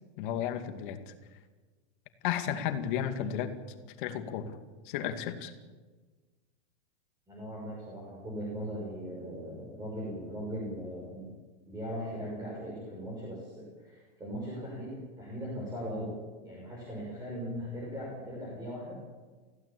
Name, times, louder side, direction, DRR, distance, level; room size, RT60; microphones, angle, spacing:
voice 1, 0.2-1.1 2.2-3.6 4.0-4.6 4.8-5.5, left 9 dB, 45° left, 7 dB, 2.4 m, -33 dB
voice 2, 7.3-11.3 11.7-16.2 16.4-19.0, equal, 10° right, -3 dB, 6.5 m, -39 dB
25.0 x 16.0 x 8.7 m, 1.3 s
supercardioid pair, 160°, 35 cm